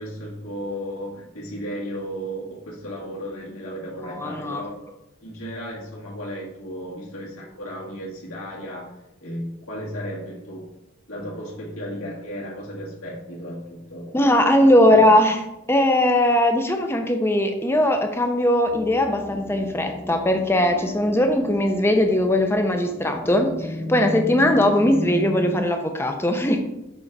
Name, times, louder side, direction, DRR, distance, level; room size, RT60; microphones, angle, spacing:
voice 1, 0.0-4.8 5.2-9.0 9.2-10.7 11.1-14.3 14.6-15.0, equal, 80° left, -5 dB, 1.9 m, -34 dB
voice 2, 4.0-4.6 14.1-15.4 15.7-26.6, left 1 dB, 10° left, 4 dB, 0.5 m, -19 dB
sound 1, 18.7-25.6, left 2 dB, 75° right, 1.7 m, -33 dB
6.5 x 3.9 x 4.6 m, 0.90 s
head